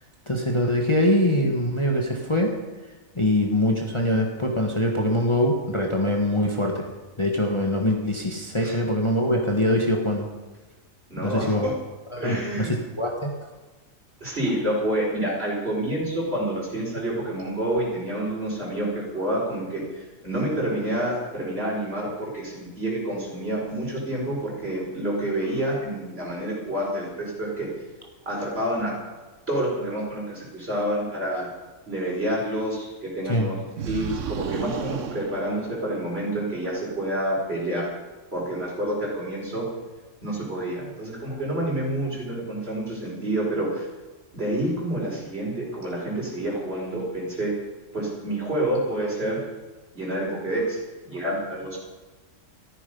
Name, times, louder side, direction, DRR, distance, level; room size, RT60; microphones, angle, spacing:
voice 1, 0.3-2.5 3.1-6.9 7.2-10.3 11.2-11.7 12.1-12.7 13.0-13.5 33.2-33.5, left 1 dB, 20° left, 0 dB, 1.5 m, -23 dB
voice 2, 11.1-11.7 12.2-12.7 14.2-19.8 20.2-27.7 28.3-28.9 29.5-31.5 31.9-33.6 33.9-37.9 38.3-39.7 40.2-43.9 44.3-47.5 47.9-49.4 49.9-50.8 51.1-51.8, right 1 dB, 45° right, -4 dB, 5.5 m, -28 dB
sound 1, 33.8-36.2, right 7 dB, 70° right, 1.2 m, -33 dB
14.5 x 13.5 x 5.4 m, 1.2 s
omnidirectional pair, 1.4 m